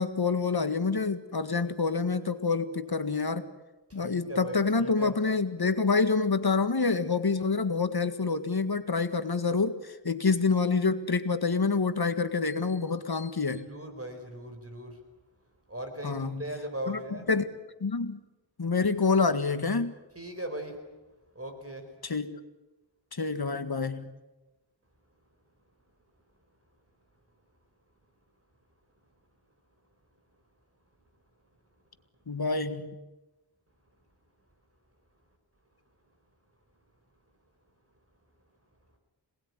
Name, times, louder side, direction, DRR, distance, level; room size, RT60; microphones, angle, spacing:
voice 1, 0.0-3.5 3.9-13.7 16.0-16.5 16.9-17.0 17.3-17.5 17.8-18.2 18.6-20.0 22.0-22.4 23.1-24.1 32.3-32.9, left 4 dB, 55° left, 10 dB, 1.9 m, -27 dB
voice 2, 3.9-5.1 13.7-15.0 15.7-17.3 20.1-20.8 21.3-21.9, right 1 dB, 30° right, 6 dB, 4.7 m, -39 dB
26.5 x 20.0 x 9.8 m, 1.1 s
wide cardioid pair, 65°, 45 cm